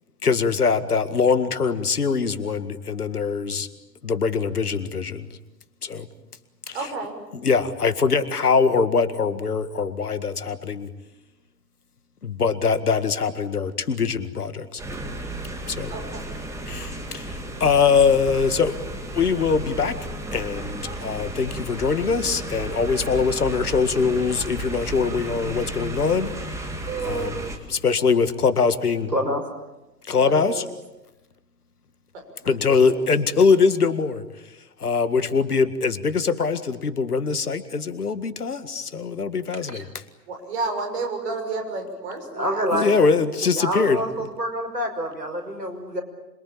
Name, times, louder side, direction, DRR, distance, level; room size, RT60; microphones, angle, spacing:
voice 1, 0.2-3.7 4.0-5.3 5.8-6.1 6.7-6.8 7.3-10.9 12.2-14.8 15.7-15.9 16.7-18.8 19.1-20.0 20.3-26.3 27.0-27.4 27.7-29.1 30.1-30.6 32.4-34.2 34.8-39.6 42.7-44.0, left 5 dB, 65° left, 12 dB, 2.0 m, -22 dB
voice 2, 6.7-7.2 15.9-16.3 26.9-27.4 30.1-30.6 32.1-33.1 40.3-42.9, right 3 dB, 40° right, 5 dB, 6.3 m, -31 dB
sound 1, 14.8-27.6, right 1 dB, 5° right, 2.3 m, -33 dB
voice 3, 29.1-29.4 42.3-43.0 43.5-46.0, equal, 80° right, 4 dB, 6.1 m, -26 dB
27.0 x 23.0 x 8.8 m, 0.98 s
figure-of-eight pair, 120°, 49 cm